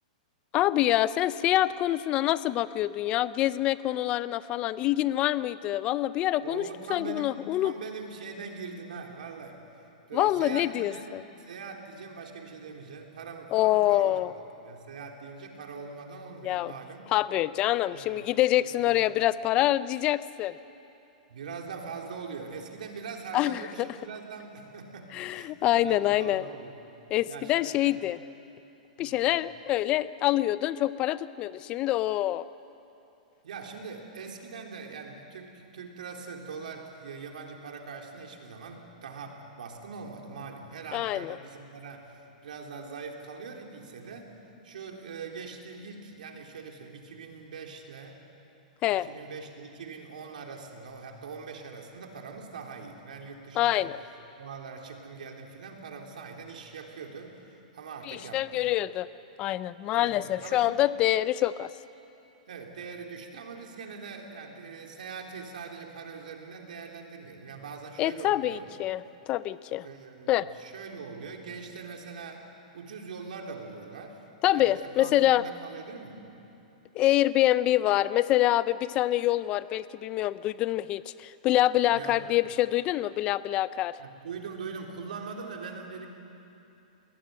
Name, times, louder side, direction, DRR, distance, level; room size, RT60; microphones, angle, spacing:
voice 1, 0.5-7.7 10.1-11.2 13.5-14.3 16.4-16.7 17.1-20.5 23.3-23.9 25.1-26.4 27.1-28.2 29.0-32.5 40.9-41.4 48.8-49.1 53.6-54.0 58.0-59.1 59.4-61.7 68.0-69.9 70.3-70.5 74.4-75.4 76.9-84.0, left 14 dB, 25° left, 16 dB, 0.5 m, -26 dB
voice 2, 6.4-9.6 10.1-11.1 11.4-14.2 14.6-17.1 17.9-18.3 18.6-19.0 21.3-26.8 27.3-28.0 29.0-29.2 33.4-44.3 44.6-48.2 48.9-53.9 54.4-58.7 59.9-60.8 62.5-68.7 69.8-72.5 72.7-74.2 74.5-76.2 81.9-82.2 84.0-86.1, right 5 dB, 85° right, 2 dB, 3.7 m, -42 dB
21.5 x 19.0 x 9.6 m, 2.8 s
supercardioid pair, 165°, 4 cm